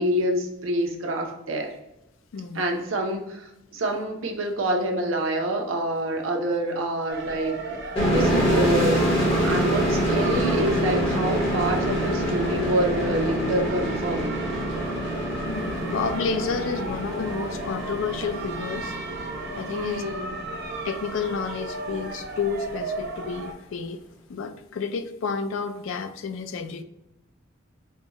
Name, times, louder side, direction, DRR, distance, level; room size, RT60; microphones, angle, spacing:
voice 1, 0.0-1.7 2.5-14.3 19.7-20.3, equal, 85° right, 1 dB, 0.8 m, -27 dB
voice 2, 2.3-2.6 15.5-19.0 19.5-20.0 20.8-24.0 24.3-26.8, left 5 dB, 75° left, 9 dB, 0.4 m, -30 dB
sound 1, 7.1-23.5, right 2 dB, 55° right, 0.6 m, -35 dB
sound 2, 8.0-21.4, equal, 30° left, 1.1 m, -26 dB
4.4 x 2.3 x 2.9 m, 0.90 s
head